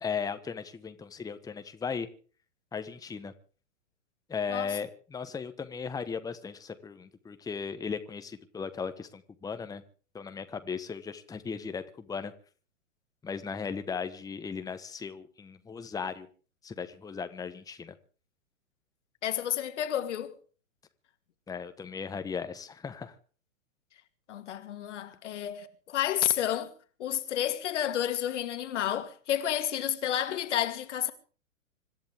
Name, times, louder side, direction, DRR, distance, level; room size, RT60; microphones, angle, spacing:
voice 1, 0.0-2.1 2.7-3.3 4.3-9.8 10.1-12.3 13.2-16.3 16.6-18.0 21.5-23.1, left 6 dB, 10° left, 1.3 m, -37 dB
voice 2, 19.2-20.4 24.3-26.7 27.0-31.1, left 11 dB, 60° left, 2.5 m, -30 dB
26.0 x 14.0 x 3.7 m
figure-of-eight pair, 115°, 40 cm